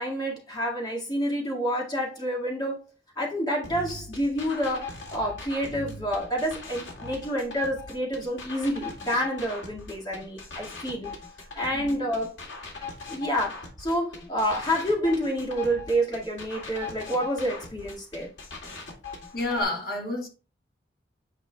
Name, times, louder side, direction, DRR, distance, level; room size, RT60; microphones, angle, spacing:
voice 1, 0.0-2.8 3.2-11.1 11.5-12.4 13.1-18.3, equal, 20° left, 1.9 m, -28 dB
sound 1, 3.6-19.6, left 4 dB, 85° left, 2.1 m, -40 dB
voice 2, 19.3-20.3, left 2 dB, 50° left, 1.5 m, -29 dB
8.7 x 5.1 x 2.3 m
head